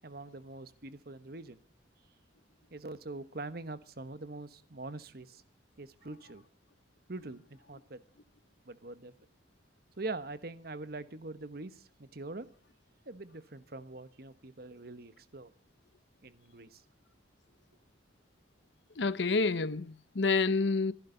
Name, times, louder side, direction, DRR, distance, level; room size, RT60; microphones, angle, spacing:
voice 1, 0.0-1.6 2.7-5.4 5.8-6.4 7.1-8.0 8.6-9.1 10.0-12.5 13.0-15.5 16.2-16.8, right 2 dB, 55° right, 1.2 m, -43 dB
voice 2, 19.0-20.9, left 4 dB, 80° left, 0.8 m, -28 dB
26.0 x 11.5 x 3.9 m
head